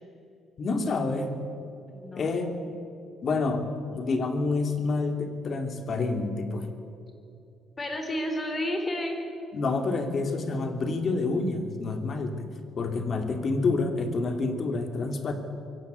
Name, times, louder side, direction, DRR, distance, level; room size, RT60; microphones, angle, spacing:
voice 1, 0.6-1.3 2.2-2.5 3.2-3.6 3.9-6.7 9.5-12.5 12.8-15.3, left 3 dB, 45° left, 6 dB, 2.7 m, -28 dB
voice 2, 1.9-2.5 7.8-9.2, left 1 dB, 25° left, 4 dB, 4.2 m, -31 dB
23.0 x 17.5 x 8.2 m, 2.7 s
cardioid pair, 130°, 0 cm